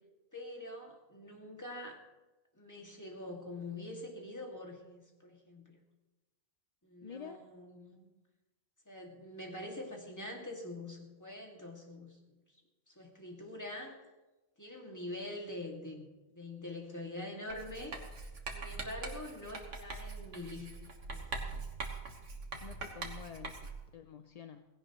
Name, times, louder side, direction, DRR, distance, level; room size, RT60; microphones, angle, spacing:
voice 1, 0.3-2.0 2.6-5.8 6.8-8.1 8.9-12.4 12.9-14.1 14.6-16.1 16.3-18.0 18.5-21.3, left 1 dB, 15° left, 0 dB, 2.1 m, -45 dB
voice 2, 7.0-7.4 22.6-24.7, left 7 dB, 50° left, 8 dB, 0.5 m, -48 dB
Writing, 17.5-23.9, right 3 dB, 75° right, 1.8 m, -43 dB
18.0 x 16.5 x 3.1 m, 1.1 s
omnidirectional pair, 1.3 m